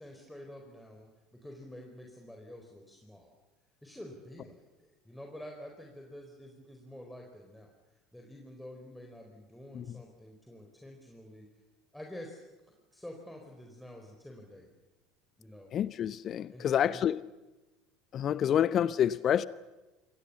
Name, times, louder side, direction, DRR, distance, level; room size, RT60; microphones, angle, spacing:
voice 1, 0.0-3.4 3.8-7.7 8.1-11.5 11.9-14.7 15.4-15.7 16.5-17.1, left 1 dB, 5° left, 4.5 m, -48 dB
voice 2, 15.7-17.2 18.1-19.5, left 9 dB, 40° left, 0.8 m, -28 dB
28.5 x 26.5 x 7.1 m
figure-of-eight pair, 70°, 0 cm